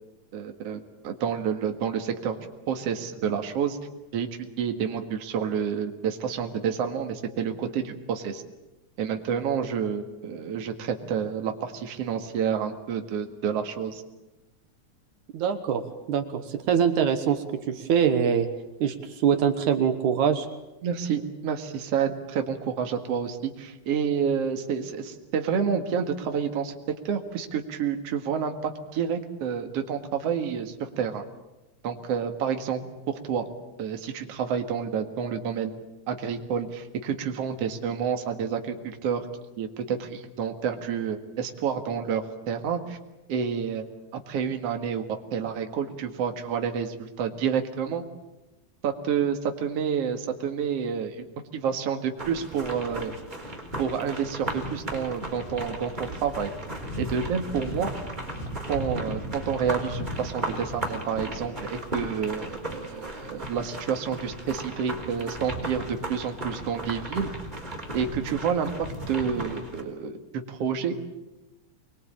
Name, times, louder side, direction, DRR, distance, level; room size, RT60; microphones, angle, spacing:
voice 1, 0.3-2.4 2.7-3.8 4.1-8.4 9.0-14.0 20.8-31.2 31.8-32.8 33.1-33.5 33.8-35.7 36.1-39.3 39.6-43.0 43.3-43.8 44.1-48.1 48.8-51.2 51.5-53.2 53.8-56.5 57.0-57.9 58.7-67.3 67.9-71.0, right 7 dB, 55° right, 5 dB, 2.7 m, -29 dB
voice 2, 15.3-15.8 16.1-18.5 18.8-20.5, right 8 dB, 75° right, 7 dB, 2.7 m, -24 dB
sound 1, 52.2-69.8, right 1 dB, 15° right, 4.2 m, -35 dB
25.0 x 22.0 x 8.9 m, 1.0 s
omnidirectional pair, 3.5 m